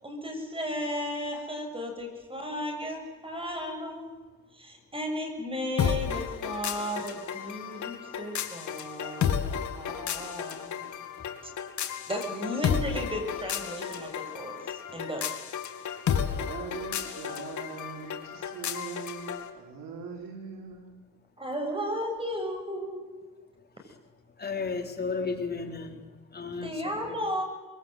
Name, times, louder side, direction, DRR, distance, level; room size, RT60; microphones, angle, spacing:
voice 1, 0.0-4.1 4.5-11.1 12.1-15.4 21.4-23.0 26.6-27.4, equal, 15° right, 4 dB, 6.9 m, -35 dB
sound 1, 5.8-19.5, left 8 dB, 60° left, 2.6 m, -32 dB
voice 2, 16.5-20.9, right 5 dB, 75° right, 2 dB, 5.2 m, -41 dB
voice 3, 24.4-26.0 26.3-27.0, left 4 dB, 30° left, 3 dB, 4.0 m, -33 dB
24.5 x 22.5 x 8.1 m, 1.3 s
cardioid pair, 120°, 33 cm